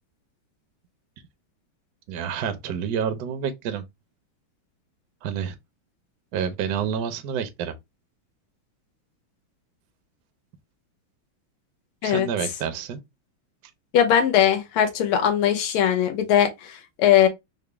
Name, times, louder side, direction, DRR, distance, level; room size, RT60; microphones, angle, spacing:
voice 1, 2.1-3.8 5.2-5.5 6.3-7.7 12.0-13.0, right 8 dB, 75° right, 0.9 m, -28 dB
voice 2, 13.9-17.3, left 9 dB, 90° left, 1.7 m, -20 dB
4.0 x 2.0 x 3.2 m
omnidirectional pair, 2.4 m